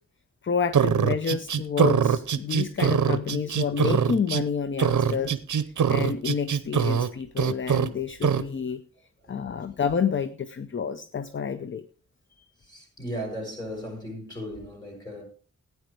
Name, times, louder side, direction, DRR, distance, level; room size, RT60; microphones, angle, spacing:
voice 1, 0.4-5.3 5.9-8.8 9.3-11.8, left 6 dB, 40° left, 0.6 m, -29 dB
sound 1, 0.7-4.4 4.8-7.1 7.4-7.9 8.2-8.4, right 7 dB, 75° right, 0.7 m, -23 dB
voice 2, 12.6-15.2, equal, 15° left, 6.6 m, -37 dB
15.5 x 9.3 x 3.4 m
wide cardioid pair, 115°, 30 cm